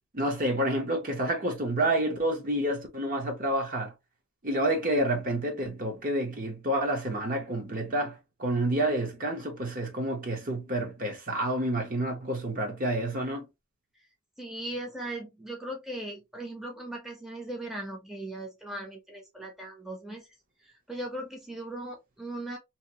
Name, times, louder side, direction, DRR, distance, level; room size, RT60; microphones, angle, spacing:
voice 1, 0.1-3.9 4.4-13.4, right 1 dB, 40° right, 0.8 m, -29 dB
voice 2, 14.4-20.3 20.6-22.6, right 1 dB, ahead, 0.7 m, -38 dB
2.8 x 2.5 x 2.8 m
head